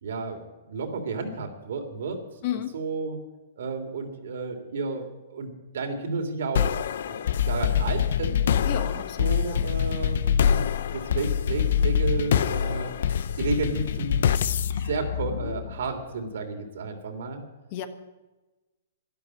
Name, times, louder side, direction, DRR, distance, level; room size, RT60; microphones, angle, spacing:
voice 1, 0.0-0.4 0.7-2.2 2.7-3.2 3.6-6.7 7.5-8.4 9.2-10.2 10.5-10.7 10.9-12.9 13.4-14.2 14.8-17.4, right 4 dB, 70° right, 5 dB, 3.0 m, -32 dB
voice 2, 2.4-2.7 8.6-9.6 17.7-17.9, left 10 dB, 40° left, 10 dB, 1.3 m, -32 dB
sound 1, 6.6-16.0, left 8 dB, 65° left, 0.7 m, -25 dB
12.5 x 11.0 x 8.9 m, 1.1 s
hypercardioid pair, 160°, 0 cm